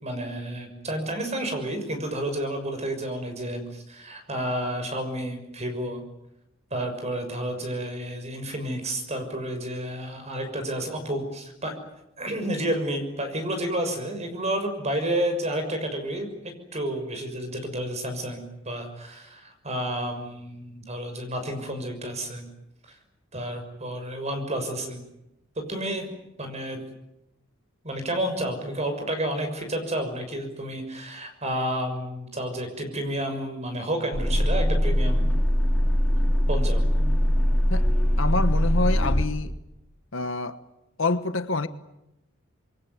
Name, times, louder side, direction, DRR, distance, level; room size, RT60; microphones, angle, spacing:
voice 1, 0.0-6.0 6.7-11.7 12.2-16.3 16.7-22.5 22.8-23.0 23.3-25.0 25.7-26.1 26.4-26.8 27.8-35.3 36.5-36.8, right 1 dB, 30° right, 6.3 m, -30 dB
sound 1, 34.1-39.3, equal, 5° left, 3.8 m, -22 dB
voice 2, 38.2-39.5 40.1-40.6 41.0-41.7, left 3 dB, 60° left, 1.3 m, -26 dB
27.0 x 23.0 x 9.5 m
head